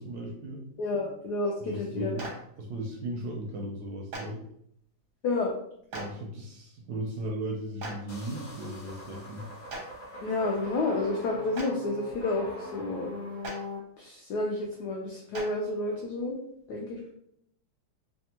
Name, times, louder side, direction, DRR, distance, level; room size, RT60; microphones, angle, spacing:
voice 1, 0.0-0.6 1.6-4.4 5.9-9.5, right 1 dB, 75° right, 0 dB, 1.0 m, -37 dB
voice 2, 0.8-2.2 5.2-5.5 10.2-13.1 14.0-16.4 16.7-17.1, left 2 dB, 80° left, -1 dB, 0.9 m, -30 dB
Clapping, 2.2-2.3 4.1-4.2 5.9-6.0 7.8-7.9 9.7-9.8 11.5-11.6 13.4-13.5 15.3-15.4, right 2 dB, 60° right, 0.7 m, -36 dB
sound 1, 8.1-13.8, left 1 dB, 55° left, 0.9 m, -41 dB
3.4 x 2.3 x 2.8 m, 0.71 s
omnidirectional pair, 2.3 m